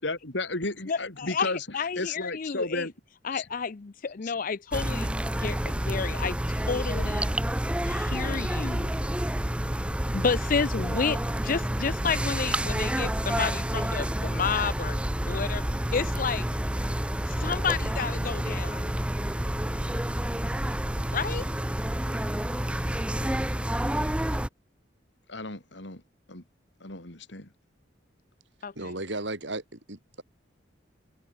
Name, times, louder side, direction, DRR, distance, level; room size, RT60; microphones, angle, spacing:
voice 1, 0.0-2.9 3.3-3.5 4.2-4.3 25.3-26.0 26.3-26.4 26.8-27.5, left 2 dB, 70° left, 3.6 m, -33 dB
voice 2, 0.9-2.9 3.2-7.3 7.8-8.9 10.1-15.0 15.3-15.6 15.9-16.4 17.3-18.9 21.1-21.5 28.6-28.7, left 5 dB, 45° left, 0.5 m, -31 dB
sound 1, 4.7-24.5, right 1 dB, 5° right, 0.7 m, -29 dB
voice 3, 28.7-30.2, right 2 dB, 70° right, 4.7 m, -35 dB
head